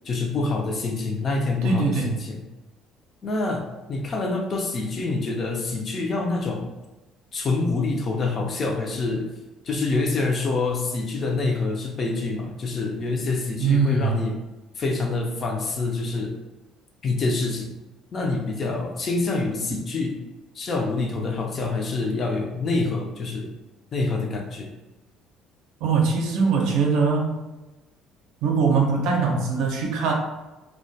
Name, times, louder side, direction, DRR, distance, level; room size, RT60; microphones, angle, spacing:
voice 1, 0.0-2.4 3.2-6.7 7.3-9.3 9.6-14.4 14.8-16.4 17.0-17.7 18.1-20.2 20.5-23.5 23.9-24.7, left 3 dB, 35° left, 2 dB, 0.4 m, -26 dB
voice 2, 1.6-2.2 13.6-14.2 25.8-27.4 28.4-30.1, right 5 dB, 80° right, 1 dB, 0.5 m, -22 dB
2.2 x 2.1 x 2.6 m, 1.1 s
cardioid pair, 145°, 0 cm